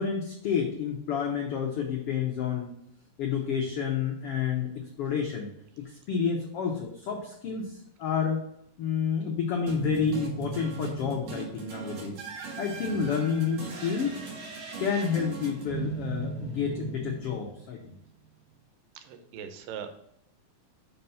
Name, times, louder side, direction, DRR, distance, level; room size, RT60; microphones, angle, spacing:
voice 1, 0.0-2.7 3.2-4.7 5.0-5.5 5.8-8.4 8.8-12.2 12.6-14.2 14.8-17.9, left 7 dB, 90° left, 1 dB, 1.2 m, -29 dB
sound 1, 9.7-17.9, right 5 dB, 55° right, 2.3 m, -37 dB
voice 2, 19.0-19.9, right 8 dB, 90° right, 7 dB, 2.5 m, -40 dB
5.6 x 5.1 x 5.4 m, 0.76 s
omnidirectional pair, 3.8 m